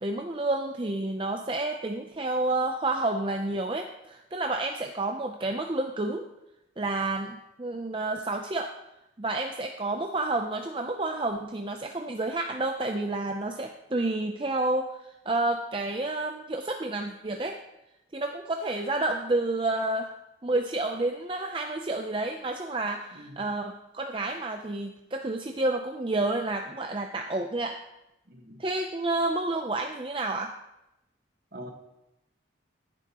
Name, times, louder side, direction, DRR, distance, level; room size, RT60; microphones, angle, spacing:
voice 1, 0.0-6.3 6.8-8.7 9.2-17.6 18.1-20.1 20.4-27.8 28.6-30.5, right 2 dB, 25° right, 4 dB, 0.6 m, -30 dB
voice 2, 23.1-23.4 28.3-28.6 31.5-31.7, equal, 55° right, 3 dB, 1.5 m, -44 dB
15.5 x 10.5 x 3.0 m, 0.90 s
head